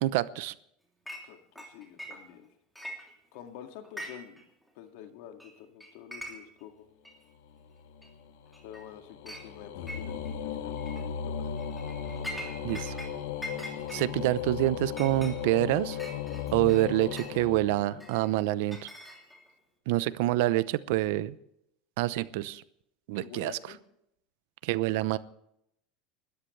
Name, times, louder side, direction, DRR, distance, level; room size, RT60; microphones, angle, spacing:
voice 1, 0.0-0.5 12.6-13.0 13.9-16.0 16.5-18.9 19.9-21.4 22.0-22.6 23.1-23.5 24.6-25.2, right 17 dB, 70° right, 16 dB, 0.7 m, -27 dB
Chink clink, 1.1-1.3 1.6-2.4 2.7-3.5 3.8-4.4 4.7-4.8 5.4-5.5 5.8-6.6 7.0-7.1 8.0-8.1 8.5-8.9 9.3-9.5 9.9-10.3 10.8-11.0 11.6-13.1 13.4-17.4 18.0-19.5, equal, ahead, 3.0 m, -43 dB
voice 2, 1.2-2.5 3.3-4.5 4.7-6.9 8.6-10.2 10.4-11.6 23.1-23.8, left 10 dB, 65° left, 5 dB, 2.1 m, -48 dB
sound 1, 7.5-18.4, left 8 dB, 85° left, 1.7 m, -37 dB
29.5 x 13.5 x 3.3 m, 0.76 s
supercardioid pair, 150°, 0 cm